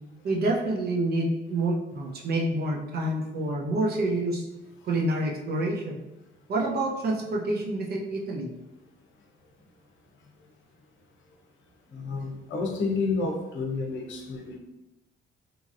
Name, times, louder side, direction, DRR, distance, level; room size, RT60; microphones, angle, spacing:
voice 1, 0.2-4.5 4.8-6.0 6.5-8.5, right 2 dB, 55° right, 0 dB, 0.7 m, -27 dB
voice 2, 11.9-14.6, left 3 dB, 75° left, 2 dB, 0.7 m, -30 dB
3.0 x 2.7 x 2.5 m, 0.95 s
cardioid pair, 90°, 20 cm